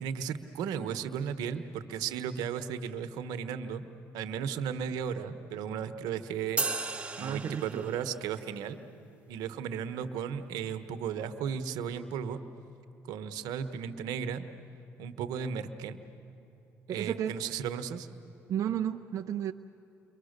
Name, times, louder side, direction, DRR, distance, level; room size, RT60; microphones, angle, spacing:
voice 1, 0.0-3.9 4.1-6.9 7.2-8.8 9.3-12.4 13.1-14.4 15.0-16.0 16.9-18.1, right 7 dB, 80° right, 10 dB, 1.2 m, -35 dB
sound 1, 6.6-8.2, right 3 dB, 20° right, 1.5 m, -34 dB
voice 2, 7.2-7.9 16.9-17.3 18.5-19.5, right 9 dB, 55° right, 6 dB, 0.7 m, -32 dB
29.0 x 24.0 x 6.7 m, 3.0 s
supercardioid pair, 70°, 6 cm